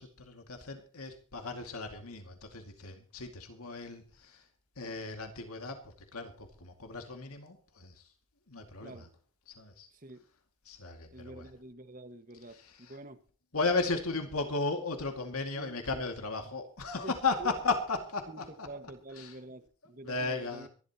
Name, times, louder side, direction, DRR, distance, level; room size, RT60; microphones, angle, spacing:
voice 1, 0.0-4.5 4.8-8.1 8.5-9.1 9.5-9.9 10.7-11.5 12.5-13.0 13.5-18.7 19.2-19.3 20.0-20.7, left 3 dB, 85° left, 5 dB, 2.3 m, -35 dB
voice 2, 9.9-10.2 11.1-13.2 15.6-15.7 17.0-17.1 17.4-17.5 18.3-18.4 18.7-20.7, right 2 dB, 40° right, 7 dB, 1.7 m, -47 dB
24.5 x 12.0 x 3.0 m, 0.39 s
head